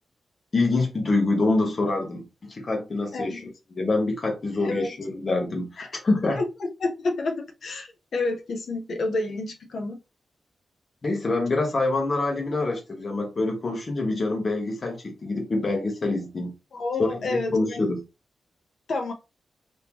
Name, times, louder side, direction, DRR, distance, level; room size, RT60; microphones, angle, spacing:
voice 1, 0.5-6.4 11.0-16.5 17.0-18.0, left 2 dB, 35° left, 0.9 m, -26 dB
voice 2, 3.1-3.5 4.6-4.9 5.8-6.0 6.3-10.0 16.7-17.9 18.9-19.1, left 2 dB, 60° left, 0.6 m, -29 dB
3.5 x 2.7 x 2.9 m
wide cardioid pair, 160°, 0 cm